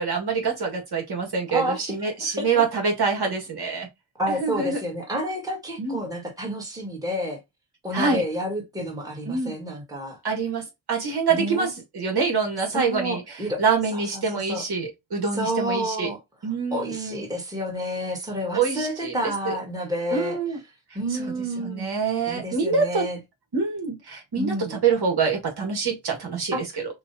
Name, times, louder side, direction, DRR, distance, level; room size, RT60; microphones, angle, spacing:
voice 1, 0.0-3.9 4.3-4.8 5.8-6.0 7.9-8.2 9.3-9.5 10.2-16.1 16.4-17.2 18.5-19.1 19.4-19.5 20.1-20.6 21.1-23.0 23.5-26.5, right 5 dB, 50° right, 1.7 m, -26 dB
voice 2, 1.5-1.8 2.2-2.6 4.2-7.4 7.8-10.2 11.3-11.7 12.7-13.6 13.9-14.6 15.3-16.2 16.7-20.4 20.9-21.9 22.3-23.2 24.4-24.8 26.5-26.6, equal, 5° right, 1.6 m, -29 dB
6.0 x 2.5 x 2.6 m
wide cardioid pair, 135°, 49 cm